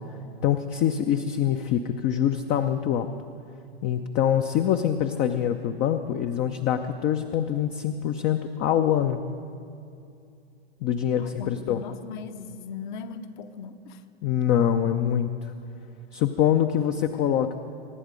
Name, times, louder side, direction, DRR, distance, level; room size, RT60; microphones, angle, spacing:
voice 1, 0.4-3.1 3.8-9.2 10.8-11.8 14.2-15.5 16.1-17.6, left 9 dB, 30° left, 7 dB, 0.6 m, -24 dB
voice 2, 11.2-14.0, left 5 dB, 50° left, 9 dB, 1.1 m, -38 dB
24.5 x 11.0 x 5.1 m, 2.5 s
hypercardioid pair, 115°, 31 cm